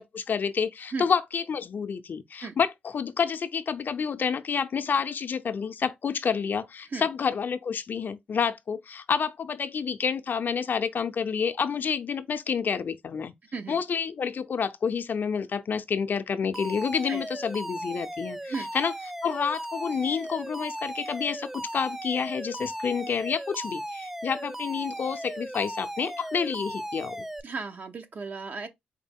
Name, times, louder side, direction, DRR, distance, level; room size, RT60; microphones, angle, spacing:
voice 1, 0.0-13.3 13.7-18.9 19.2-27.2, left 6 dB, 60° left, 0.5 m, -29 dB
voice 2, 13.5-13.8 17.1-17.2 18.5-18.7 27.4-28.7, right 4 dB, 55° right, 0.7 m, -35 dB
Alarm, 16.5-27.4, right 1 dB, 10° right, 0.3 m, -37 dB
4.4 x 2.0 x 3.5 m
supercardioid pair, 55°, 4 cm